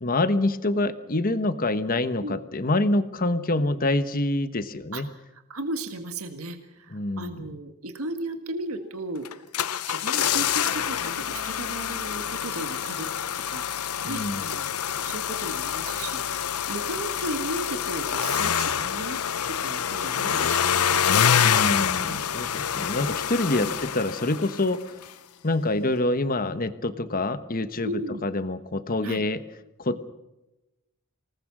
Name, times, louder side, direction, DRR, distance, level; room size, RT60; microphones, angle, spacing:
voice 1, 0.0-5.1 6.9-7.4 14.0-14.5 21.4-24.9 25.4-27.9 28.2-29.4 29.8-30.0, left 2 dB, 40° left, 11 dB, 1.2 m, -26 dB
voice 2, 5.3-9.3 9.9-13.1 13.4-19.2 19.5-21.1 21.9-22.5 23.6-23.8 27.8-28.2 29.0-29.2, right 2 dB, 70° right, 7 dB, 1.7 m, -36 dB
sound 1, 9.3-24.8 25.0-25.1, left 8 dB, 80° left, 0.8 m, -26 dB
26.5 x 19.0 x 6.2 m, 0.97 s
head